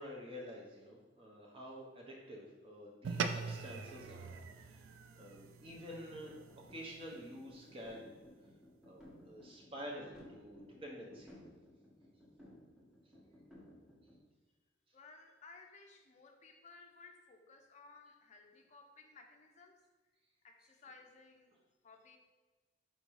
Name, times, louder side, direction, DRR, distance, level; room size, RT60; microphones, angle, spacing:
voice 1, 0.0-4.3 4.6-4.9 5.2-6.4 6.7-8.2 8.8-11.4, equal, 30° right, -2 dB, 0.8 m, -49 dB
sound 1, 3.0-7.7, right 5 dB, 75° right, 0.3 m, -43 dB
sound 2, 5.6-14.2, equal, 5° right, 0.8 m, -59 dB
voice 2, 14.9-19.8 20.4-21.5 21.8-22.2, left 4 dB, 35° left, 3 dB, 0.5 m, -58 dB
4.4 x 2.6 x 4.5 m, 1.3 s
head